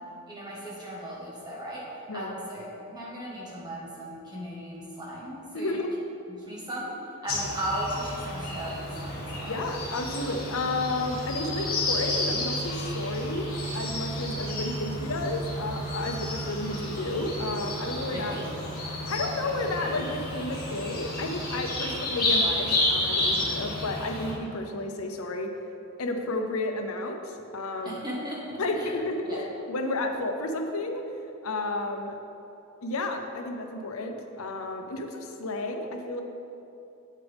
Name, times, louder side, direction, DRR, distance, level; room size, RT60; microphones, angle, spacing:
voice 1, 0.3-1.8 2.1-5.8 6.3-6.9 7.2-9.6 18.1-18.5 27.8-28.9 29.2-29.4, equal, 20° right, -5 dB, 1.4 m, -36 dB
voice 2, 5.5-5.9 9.5-13.5 13.7-18.3 19.1-25.5 26.0-28.0 28.6-31.0 31.4-32.2 32.8-36.2, left 2 dB, 75° left, 5 dB, 0.7 m, -32 dB
sound 1, 7.3-24.3, left 1 dB, 45° left, 2.0 m, -31 dB
8.3 x 7.5 x 3.5 m, 2.8 s
head